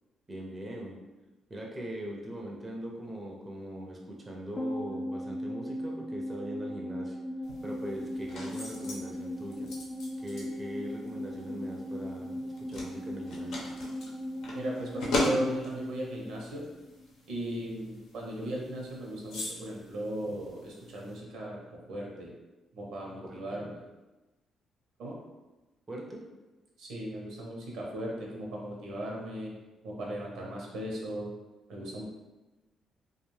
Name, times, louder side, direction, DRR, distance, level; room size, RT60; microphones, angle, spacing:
voice 1, 0.3-0.9 1.5-7.2 7.6-9.7 10.2-13.6 23.5-23.6 25.9-26.2, equal, 25° right, -1 dB, 0.5 m, -41 dB
sound 1, 4.6-17.1 17.3-17.4, equal, 35° left, 0.5 m, -38 dB
sound 2, 7.4-21.2, left 1 dB, 80° left, 0.7 m, -39 dB
voice 2, 14.5-16.6 17.3-22.3 22.7-23.8 25.0-25.2 26.8-29.5 29.8-31.3 31.7-32.0, right 1 dB, 80° right, -2 dB, 0.7 m, -37 dB
2.4 x 2.3 x 3.1 m, 1.1 s
cardioid pair, 90°, 0 cm